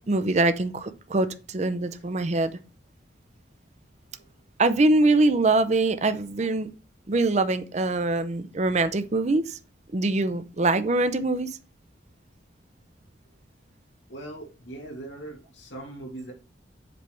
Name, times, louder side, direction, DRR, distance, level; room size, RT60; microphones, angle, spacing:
voice 1, 0.1-2.6 4.6-6.7 7.1-9.6 9.9-11.6, right 2 dB, 40° right, 0.6 m, -23 dB
voice 2, 14.1-16.3, right 2 dB, 90° left, 2.2 m, -40 dB
7.7 x 3.4 x 4.5 m
head